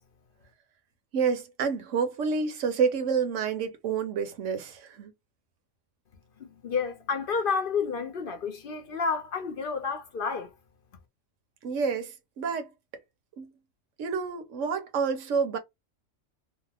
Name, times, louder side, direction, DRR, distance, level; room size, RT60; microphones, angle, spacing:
voice 1, 1.1-5.1 11.6-12.7 13.4-13.5 14.0-15.6, right 5 dB, 85° right, 1.1 m, -28 dB
voice 2, 6.4-10.5, left 5 dB, 55° left, 0.7 m, -30 dB
2.8 x 2.0 x 3.2 m
omnidirectional pair, 1.3 m